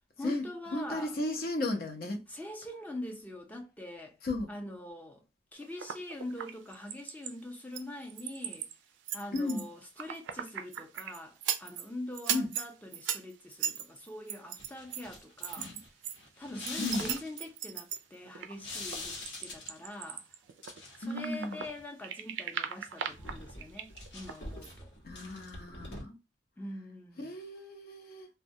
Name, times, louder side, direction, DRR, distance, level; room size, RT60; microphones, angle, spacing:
voice 1, 0.2-1.2 2.3-4.2 4.5-5.2 5.5-8.7 9.1-15.7 16.4-20.2 21.0-24.9 26.6-27.3, left 1 dB, 10° left, 0.5 m, -43 dB
voice 2, 0.7-2.2 4.2-4.5 9.3-9.7 12.3-12.5 15.6-15.8 16.8-17.1 21.0-21.6 25.0-26.1 27.2-28.3, left 2 dB, 55° left, 0.6 m, -34 dB
sound 1, 5.6-7.3 7.7-8.7 9.1-11.9 12.1-16.2 16.5-21.7 22.0-24.4 24.6-24.7, right 9 dB, 80° right, 0.3 m, -38 dB
sound 2, 14.6-17.5 18.6-19.9 20.5-21.2 21.5-21.8 22.9-26.0, left 2 dB, 75° left, 1.0 m, -44 dB
2.2 x 2.2 x 2.7 m
head